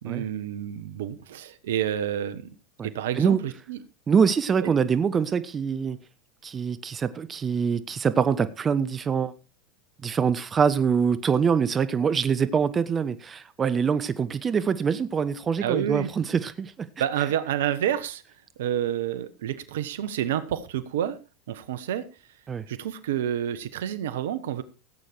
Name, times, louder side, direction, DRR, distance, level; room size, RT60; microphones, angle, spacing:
voice 1, 0.0-2.5 2.8-3.8 4.6-4.7 15.6-16.1 17.0-18.2 18.6-21.2 21.5-22.0 22.7-24.6, right 10 dB, 75° right, 1.3 m, -29 dB
voice 2, 4.1-6.0 6.4-9.3 10.0-16.7 22.5-22.6, right 6 dB, 25° right, 1.0 m, -24 dB
16.0 x 8.6 x 4.6 m
hypercardioid pair, 90°, 0 cm